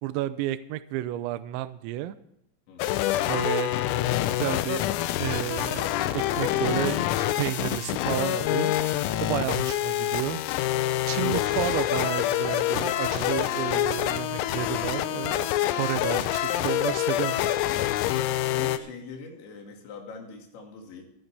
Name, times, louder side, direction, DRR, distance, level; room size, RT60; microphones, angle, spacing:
voice 1, 0.0-2.2 3.2-3.8 4.3-4.9 5.2-8.7 9.2-10.4 11.1-17.5, right 13 dB, 80° right, 12 dB, 2.7 m, -31 dB
voice 2, 2.7-3.0 18.4-21.1, left 5 dB, 65° left, 2 dB, 4.3 m, -43 dB
sound 1, 2.8-18.8, left 13 dB, 85° left, 3.5 m, -26 dB
27.5 x 9.6 x 3.4 m, 0.78 s
omnidirectional pair, 5.9 m